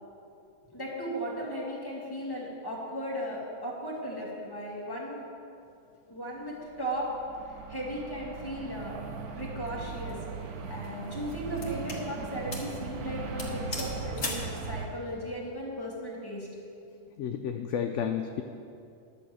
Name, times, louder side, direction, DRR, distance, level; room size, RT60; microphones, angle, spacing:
voice 1, 0.7-5.3 6.1-7.1 7.7-10.2 10.7-16.5, equal, 15° left, -4 dB, 2.3 m, -36 dB
sound 1, 6.6-14.9, right 5 dB, 75° right, 1.3 m, -39 dB
sound 2, 9.9-10.1 10.8-12.1 12.5-12.8 13.0-13.1 13.4-14.5, left 2 dB, 45° left, 1.9 m, -38 dB
voice 2, 17.2-18.4, left 8 dB, 65° left, 6 dB, 0.8 m, -31 dB
11.5 x 6.5 x 7.7 m, 2.5 s
omnidirectional pair, 1.6 m